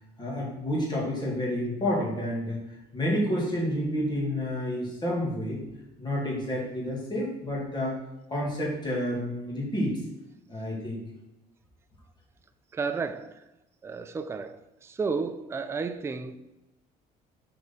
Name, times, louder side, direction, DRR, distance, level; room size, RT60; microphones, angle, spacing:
voice 1, 0.2-2.6 2.9-5.6 6.0-8.0 8.3-10.0 10.5-11.0, left 1 dB, 25° left, 2.3 m, -29 dB
voice 2, 12.7-13.5 13.8-16.4, right 4 dB, 15° right, 0.3 m, -32 dB
4.6 x 4.3 x 5.3 m
cardioid pair, 110°, 17 cm